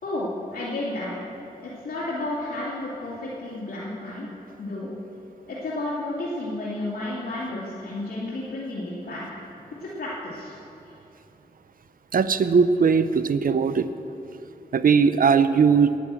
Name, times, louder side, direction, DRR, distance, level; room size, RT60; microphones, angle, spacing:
voice 1, 0.0-1.1 1.6-4.3 4.6-4.9 5.5-9.3 9.8-10.5 10.9-11.0, left 2 dB, 75° left, -8 dB, 2.4 m, -32 dB
voice 2, 12.1-13.9 14.7-15.9, right 5 dB, 65° right, 12 dB, 0.6 m, -19 dB
10.0 x 10.0 x 7.6 m, 2.8 s
cardioid pair, 55°, 16 cm